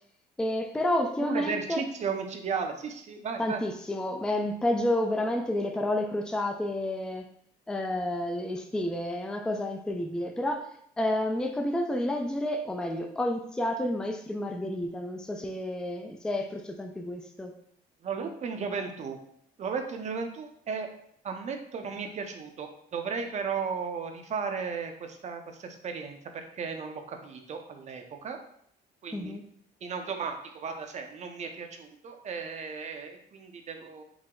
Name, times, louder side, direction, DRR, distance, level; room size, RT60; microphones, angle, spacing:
voice 1, 0.4-1.8 3.4-7.3 7.7-10.6 11.0-17.5 29.1-29.4, left 1 dB, 5° left, 5 dB, 0.4 m, -30 dB
voice 2, 1.2-3.6 18.0-19.2 19.6-20.9 21.2-28.4 29.0-29.4 29.8-34.0, right 5 dB, 45° right, 5 dB, 0.6 m, -35 dB
4.7 x 2.1 x 3.7 m, 0.68 s
cardioid pair, 110°, 17 cm